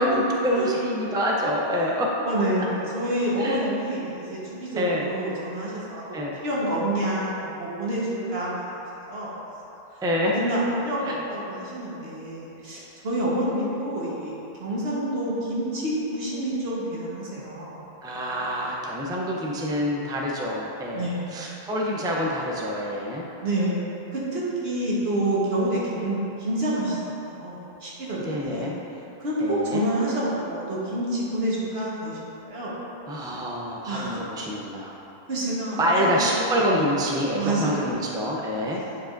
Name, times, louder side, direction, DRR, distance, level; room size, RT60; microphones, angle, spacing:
voice 1, 0.0-2.1 3.4-3.6 4.7-5.1 6.1-6.3 10.0-10.3 11.0-11.2 18.0-23.3 28.2-28.7 29.4-29.8 33.1-35.0 35.8-38.8, equal, 5° right, -2 dB, 0.5 m, -26 dB
voice 2, 2.2-6.0 6.4-8.7 8.9-9.3 10.3-17.8 20.9-21.3 23.4-23.7 24.1-28.7 29.2-32.7 33.9-34.2 35.3-36.3 37.3-37.9 38.7-39.0, right 1 dB, 75° right, -6 dB, 1.6 m, -28 dB
9.7 x 4.8 x 2.6 m, 3.0 s
omnidirectional pair, 1.0 m